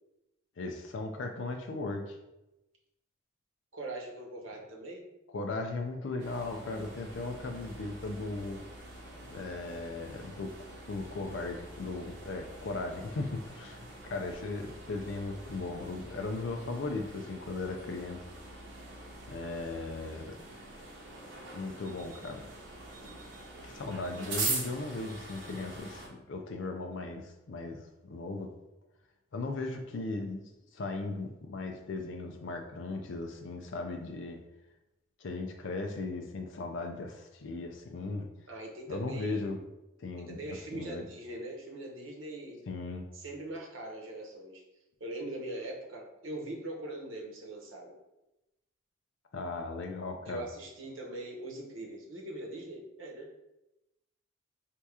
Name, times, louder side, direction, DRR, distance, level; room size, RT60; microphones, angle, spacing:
voice 1, 0.6-2.2 5.3-8.6 9.3-10.5 10.9-18.2 19.3-20.4 21.5-22.4 23.6-28.5 29.3-30.4 30.7-34.4 35.2-38.3 38.9-39.6 40.0-41.0 42.7-43.1 49.3-50.5, left 3 dB, 70° left, 3 dB, 0.5 m, -37 dB
voice 2, 3.7-5.0 38.5-39.4 40.3-42.6 43.1-44.6 45.0-48.0 50.3-53.3, right 1 dB, 85° right, 0 dB, 1.0 m, -41 dB
sound 1, 6.2-26.1, right 2 dB, 65° right, 1.2 m, -43 dB
3.4 x 2.9 x 4.7 m, 0.94 s
head